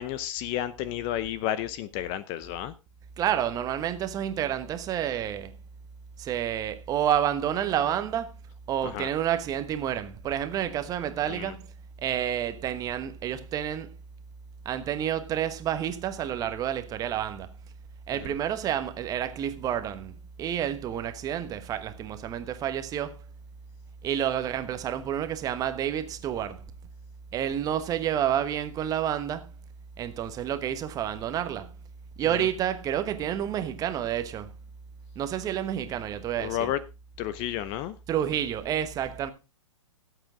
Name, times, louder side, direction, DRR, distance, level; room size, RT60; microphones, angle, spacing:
voice 1, 0.0-2.7 8.9-9.1 11.3-11.5 32.4-32.5 36.4-36.8 37.2-37.9, left 12 dB, 30° left, 0.7 m, -31 dB
voice 2, 3.2-5.6 6.2-8.3 8.7-11.7 12.0-14.0 14.6-17.5 18.1-23.3 24.0-26.7 27.3-29.5 30.0-31.8 32.2-34.5 35.1-36.7 38.1-39.3, right 10 dB, 20° right, 1.1 m, -29 dB
17.0 x 8.1 x 3.7 m
figure-of-eight pair, 120°, 17 cm